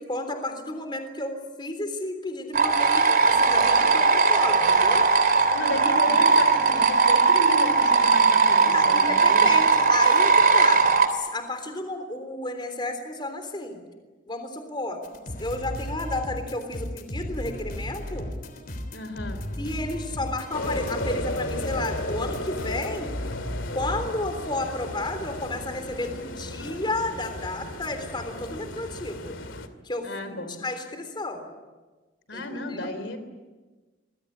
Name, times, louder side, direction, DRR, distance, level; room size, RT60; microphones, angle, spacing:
voice 1, 0.0-5.1 8.7-13.8 14.3-15.0 15.4-18.3 19.6-23.1 23.7-29.3 29.8-31.5 32.3-32.9, left 2 dB, 25° left, 7 dB, 3.5 m, -32 dB
sound 1, 2.5-11.1, right 4 dB, 50° right, 3.4 m, -19 dB
voice 2, 5.5-9.5 18.9-19.4 30.0-30.6 32.3-33.2, left 1 dB, 70° left, 10 dB, 3.6 m, -33 dB
sound 2, 15.0-24.1, left 1 dB, 45° left, 3.5 m, -35 dB
sound 3, 20.5-29.7, left 1 dB, 90° left, 2.5 m, -35 dB
26.0 x 22.5 x 9.9 m, 1.3 s
head